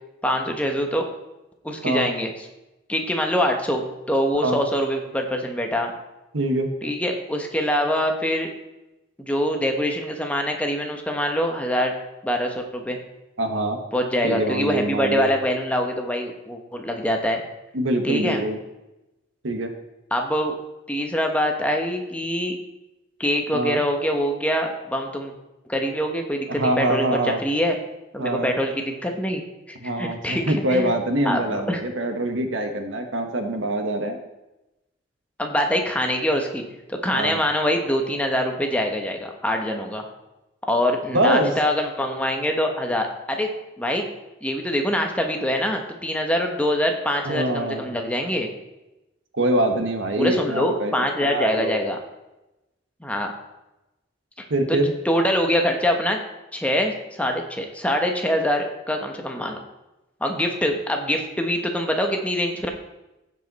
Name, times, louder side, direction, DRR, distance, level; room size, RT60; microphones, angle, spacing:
voice 1, 0.2-1.1 1.6-2.3 2.9-5.9 6.8-8.5 9.2-11.9 12.2-13.0 13.9-17.4 18.0-18.4 20.1-20.6 20.9-22.6 23.2-25.3 25.7-27.0 27.4-27.8 28.1-30.9 31.2-31.8 35.4-36.6 36.9-40.1 40.7-43.5 43.8-44.0 44.4-48.5 50.2-52.0 53.0-53.3 54.7-54.8 55.0-56.2 56.5-59.6 60.2-62.7, equal, 5° left, 3 dB, 1.0 m, -24 dB
voice 2, 6.3-6.7 13.4-13.8 14.2-15.3 17.7-18.6 19.4-19.7 23.5-23.8 26.5-27.4 28.2-28.5 29.8-34.2 37.1-37.4 41.1-41.6 47.2-47.9 49.3-50.9 51.2-51.9 54.5-54.9, right 1 dB, 85° right, 6 dB, 1.3 m, -24 dB
15.5 x 5.3 x 4.1 m, 0.97 s
head